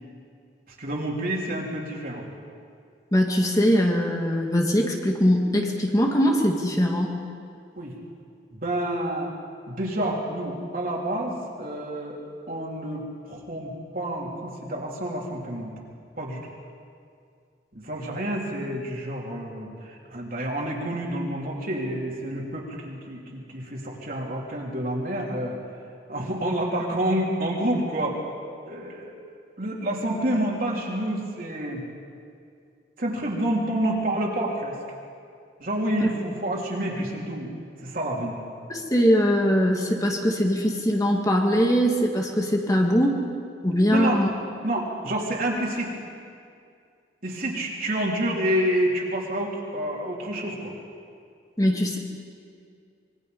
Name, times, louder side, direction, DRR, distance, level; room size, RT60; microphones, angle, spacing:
voice 1, 0.8-2.2 7.8-7.9 8.6-9.3 9.7-12.2 12.5-15.7 16.2-16.4 17.7-25.6 26.1-28.2 28.6-29.2 29.6-31.8 33.0-34.7 35.6-37.5 37.8-38.4 43.9-44.2 44.6-45.9 47.2-50.7, right 1 dB, 50° right, -2 dB, 3.7 m, -28 dB
voice 2, 3.1-7.2 36.0-36.1 38.7-43.2 43.6-44.3 51.6-52.0, equal, 20° left, 1 dB, 1.9 m, -21 dB
25.5 x 22.0 x 5.4 m, 2.3 s
head